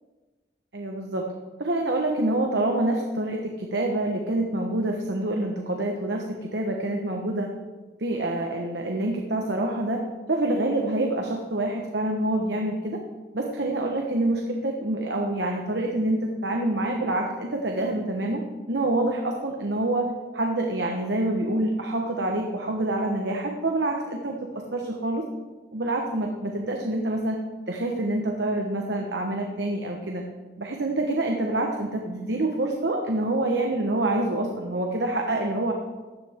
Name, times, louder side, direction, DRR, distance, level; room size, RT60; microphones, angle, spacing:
voice 1, 0.7-1.3 1.6-7.5 8.0-10.0 10.3-13.0 13.3-18.4 18.7-20.1 20.3-25.2 25.7-27.4 27.7-30.2 30.6-35.7, right 1 dB, 70° right, 1 dB, 1.1 m, -26 dB
15.5 x 11.0 x 3.6 m, 1.3 s
head